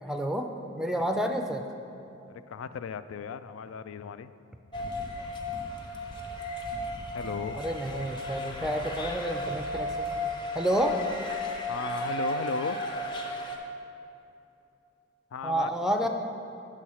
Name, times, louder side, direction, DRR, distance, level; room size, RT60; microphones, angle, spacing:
voice 1, 0.0-0.5 0.8-1.7 7.5-10.0 10.5-11.0 15.4-16.1, right 1 dB, ahead, 4 dB, 0.3 m, -29 dB
voice 2, 2.3-4.3 7.1-7.6 11.7-12.8 15.3-15.9, left 7 dB, 85° left, 13 dB, 0.3 m, -36 dB
sound 1, 4.7-13.6, left 1 dB, 25° left, 0.7 m, -34 dB
8.8 x 4.3 x 6.3 m, 2.8 s
head